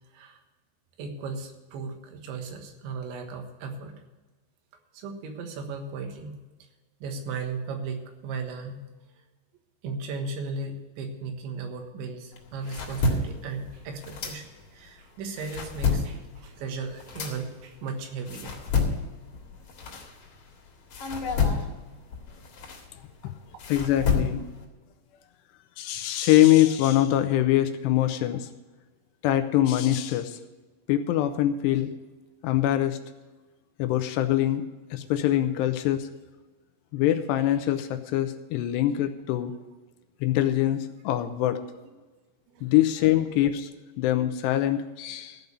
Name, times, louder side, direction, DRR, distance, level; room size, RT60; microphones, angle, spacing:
voice 1, 1.0-3.9 4.9-6.7 7.0-8.8 9.8-18.6 42.5-42.7, right 4 dB, 85° right, 4 dB, 3.8 m, -36 dB
sound 1, 12.3-14.9 15.2-20.5 20.9-24.6, left 4 dB, 55° left, 2.6 m, -30 dB
voice 2, 23.7-24.4 25.8-28.5 29.2-30.4 30.9-31.9 32.4-33.0 33.8-34.6 34.9-36.1 36.9-39.5 40.2-41.6 42.6-43.7 44.0-45.4, left 13 dB, 80° left, 9 dB, 2.7 m, -23 dB
15.0 x 5.3 x 9.4 m, 1.2 s
omnidirectional pair, 5.1 m